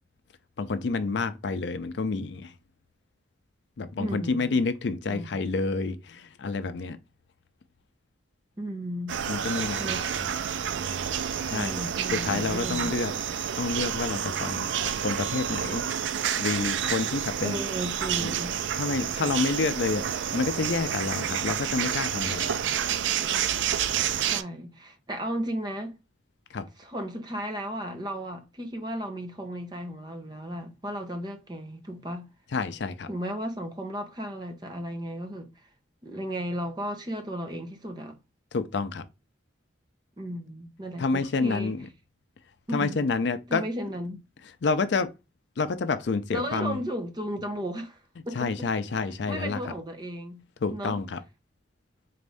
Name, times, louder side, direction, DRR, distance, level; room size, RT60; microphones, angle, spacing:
voice 1, 0.6-2.5 3.8-7.0 9.3-10.0 11.4-11.8 12.1-14.7 15.0-17.6 18.2-18.3 18.7-22.7 26.5-26.6 32.5-33.1 38.5-39.0 41.0-41.9 42.7-43.6 44.6-45.1 45.6-46.8 48.3-49.6 50.6-51.2, left 4 dB, 65° left, 0.5 m, -29 dB
voice 2, 4.0-4.6 5.1-5.4 8.6-9.2 9.8-10.1 11.4-12.9 17.4-18.6 24.2-26.0 26.8-32.3 33.1-35.5 36.0-38.2 40.2-41.7 42.7-43.1 43.5-44.3 46.3-48.0 48.3-48.7 49.3-50.4 50.7-51.0, equal, 20° right, 0.7 m, -35 dB
sound 1, 9.1-24.4, right 9 dB, 75° right, 0.4 m, -29 dB
4.1 x 2.6 x 3.4 m
head